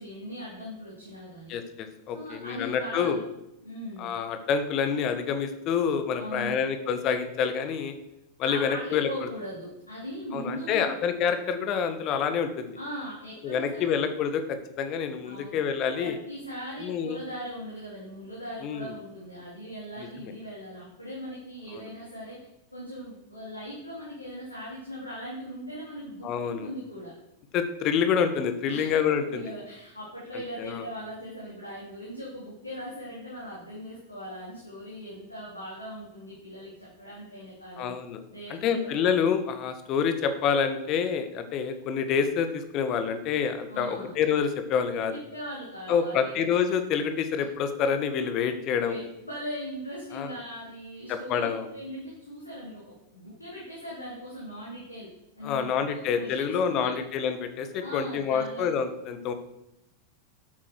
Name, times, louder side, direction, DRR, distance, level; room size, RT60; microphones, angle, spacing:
voice 1, 0.0-1.5 2.1-3.2 3.6-4.1 6.2-6.6 8.4-10.9 12.7-14.0 15.2-15.6 16.0-22.4 22.7-27.1 28.7-28.9 29.2-37.9 38.3-38.9 43.7-44.1 45.1-46.4 48.9-52.8 53.1-55.1 55.4-56.9 57.8-58.7, equal, 85° left, -6 dB, 3.6 m, -39 dB
voice 2, 1.5-3.2 4.0-7.9 8.4-9.1 10.3-12.8 13.4-16.2 16.8-17.2 18.6-18.9 20.0-20.3 26.2-26.7 27.5-29.4 30.6-30.8 37.8-38.2 38.6-45.1 45.9-48.9 50.1-50.3 51.1-51.7 55.4-59.3, left 7 dB, 35° left, 9 dB, 1.6 m, -27 dB
12.5 x 8.7 x 4.7 m, 0.84 s
figure-of-eight pair, 90°, 0 cm